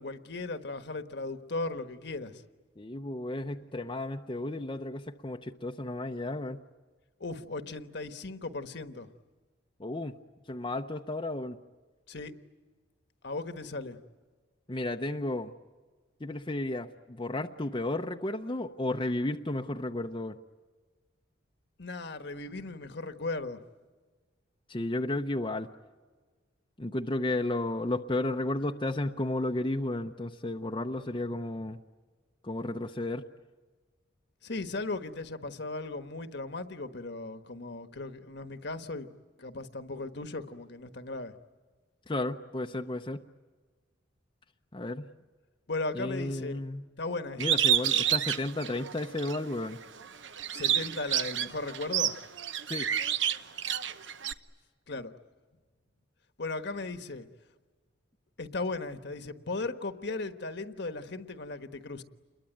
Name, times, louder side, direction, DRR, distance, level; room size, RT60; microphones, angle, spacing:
voice 1, 0.0-2.4 7.2-9.1 12.1-12.3 13.2-14.0 21.8-23.6 34.4-39.1 39.4-41.3 45.7-46.6 47.0-47.6 50.5-52.2 54.9-55.1 56.4-57.3 58.4-62.0, left 3 dB, 60° left, 9 dB, 1.3 m, -37 dB
voice 2, 2.8-6.6 9.8-10.1 10.5-11.6 14.7-15.5 16.2-20.4 24.7-25.7 26.8-31.8 32.4-33.2 42.1-43.2 44.7-45.1 45.9-46.8 47.4-49.8 52.7-52.9, left 2 dB, 25° left, 3 dB, 0.7 m, -33 dB
Bird, 47.4-49.4 49.8-54.3, right 10 dB, 65° right, 0.9 m, -29 dB
28.5 x 22.0 x 9.2 m, 1.4 s
head